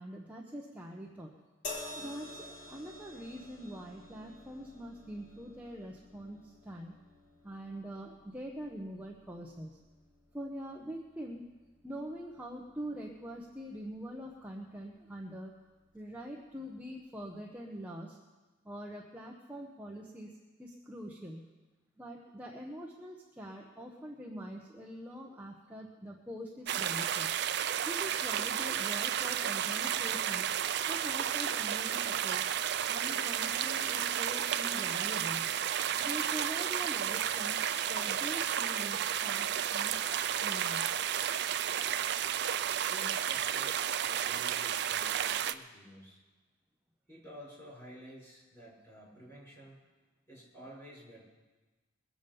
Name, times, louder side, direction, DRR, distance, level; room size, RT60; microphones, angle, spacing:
voice 1, 0.0-1.4 1.9-7.0 7.4-9.8 10.3-11.5 11.8-15.6 15.9-18.2 18.6-20.3 20.6-21.5 22.0-27.3 27.8-30.5 30.9-32.5 32.9-35.6 36.0-37.6 37.9-40.0 40.4-40.9, equal, 10° right, -2 dB, 0.9 m, -44 dB
sound 1, 1.6-15.0 15.9-16.1, left 2 dB, 40° left, 1.9 m, -51 dB
sound 2, 26.7-45.5, right 9 dB, 50° right, 0.4 m, -32 dB
voice 2, 42.9-46.2 47.1-49.8 50.3-51.2, right 1 dB, 15° left, -6 dB, 5.7 m, -51 dB
22.0 x 7.3 x 5.4 m, 1.2 s
head